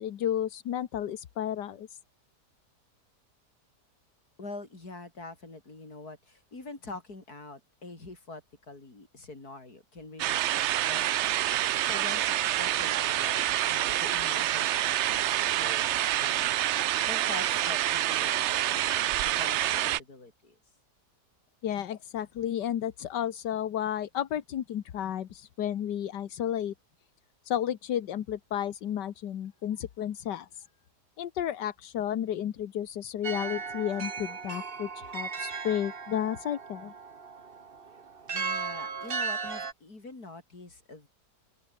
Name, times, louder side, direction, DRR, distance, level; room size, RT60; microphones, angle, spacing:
voice 1, 0.0-2.0 21.6-26.7 27.4-30.7 31.2-36.9, left 10 dB, 85° left, 1.7 m, -32 dB
voice 2, 4.4-8.4 8.7-16.6 17.0-20.6 38.3-41.1, left 3 dB, 65° left, 5.6 m, -45 dB
sound 1, 10.2-20.0, right 13 dB, 85° right, 0.6 m, -27 dB
sound 2, 33.2-39.7, right 5 dB, 35° right, 1.5 m, -36 dB
open air
omnidirectional pair, 1.8 m